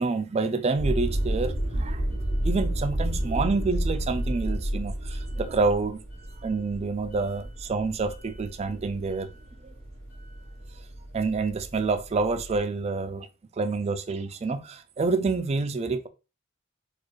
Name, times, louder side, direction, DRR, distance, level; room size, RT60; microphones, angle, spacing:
voice 1, 0.0-2.0 2.4-6.0 6.4-9.3 9.6-9.7 11.1-13.3 13.6-16.1, right 4 dB, 30° right, 0.3 m, -28 dB
sound 1, 0.7-12.6, right 1 dB, 80° left, 1.6 m, -31 dB
4.2 x 2.4 x 3.1 m
head